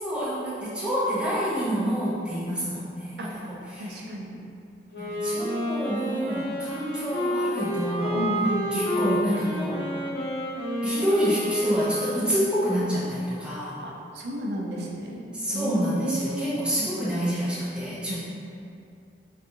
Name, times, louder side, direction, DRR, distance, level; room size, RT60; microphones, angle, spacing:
voice 1, 0.0-4.1 5.0-8.3 8.7-9.8 10.8-13.8 15.3-18.2, equal, 5° right, -10 dB, 0.5 m, -28 dB
voice 2, 3.8-4.4 8.1-8.9 13.8-15.2 15.5-16.6 18.1-18.2, right 1 dB, 65° right, -2 dB, 0.4 m, -31 dB
Wind instrument woodwind instrument, 4.9-12.6, equal, 65° left, 0.6 m, -29 dB
2.5 x 2.3 x 2.8 m, 2.5 s
head